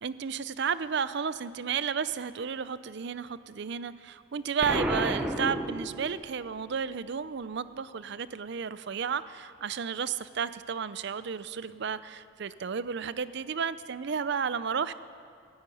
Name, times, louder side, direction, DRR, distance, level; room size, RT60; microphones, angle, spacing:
voice 1, 0.0-14.9, right 6 dB, 65° right, 15 dB, 0.5 m, -32 dB
Explosion, 4.6-6.4, right 1 dB, 5° right, 0.8 m, -31 dB
14.5 x 9.5 x 9.1 m, 2.4 s
head